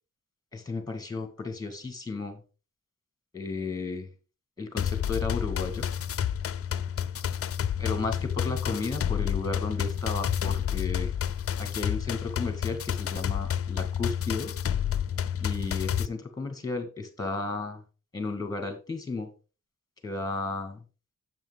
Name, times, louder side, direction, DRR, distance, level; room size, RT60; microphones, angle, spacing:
voice 1, 0.5-2.4 3.3-4.1 4.6-5.9 7.8-11.1 11.6-14.5 15.4-17.8 18.1-19.3 20.0-20.8, left 3 dB, 10° left, 6 dB, 1.9 m, -34 dB
sound 1, 4.8-16.1, left 9 dB, 45° left, 0.4 m, -30 dB
9.0 x 7.8 x 3.5 m, 0.33 s
wide cardioid pair, 155°, 32 cm